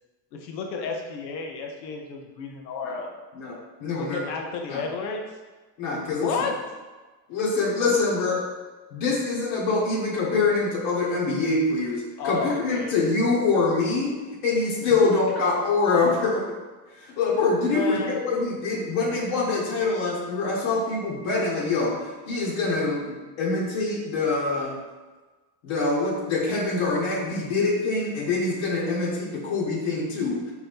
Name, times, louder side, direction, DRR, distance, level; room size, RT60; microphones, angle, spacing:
voice 1, 0.3-3.1 3.8-5.2 6.0-6.5 12.2-13.0 14.8-15.4 17.7-18.2, left 4 dB, 85° left, 2 dB, 0.7 m, -32 dB
voice 2, 3.3-4.2 4.7-4.8 5.8-6.3 7.3-8.4 8.9-14.1 14.4-16.4 17.2-24.8 25.6-30.5, left 3 dB, 70° left, -4 dB, 1.3 m, -25 dB
4.5 x 2.6 x 3.4 m, 1.3 s
hypercardioid pair, 85°, 49 cm